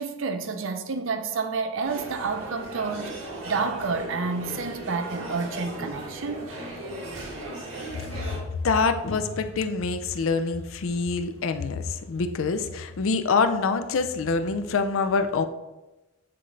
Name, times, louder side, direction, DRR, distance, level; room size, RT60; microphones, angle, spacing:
voice 1, 0.0-6.6, right 4 dB, 70° right, 0.6 m, -30 dB
sound 1, 1.8-8.4, right 1 dB, 90° right, 1.5 m, -37 dB
voice 2, 8.0-15.5, left 4 dB, 80° left, 0.5 m, -26 dB
7.6 x 3.9 x 3.2 m
head